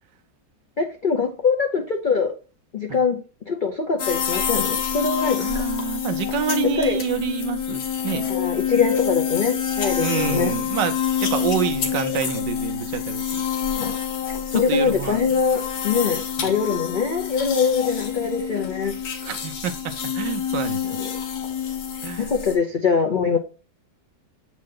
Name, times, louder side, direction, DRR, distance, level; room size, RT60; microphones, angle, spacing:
voice 1, 0.8-2.3 2.7-5.5 6.8-7.0 8.3-10.5 13.8-14.0 14.5-18.9 20.8-21.2 22.2-23.4, left 5 dB, 90° left, 0.4 m, -23 dB
sound 1, 4.0-22.6, left 8 dB, 65° left, 1.5 m, -27 dB
voice 2, 5.4-8.4 10.0-13.4 14.5-15.3 16.4-16.5 19.2-20.8 22.0-22.3, right 10 dB, 80° right, 1.4 m, -28 dB
7.5 x 4.0 x 3.6 m
omnidirectional pair, 1.9 m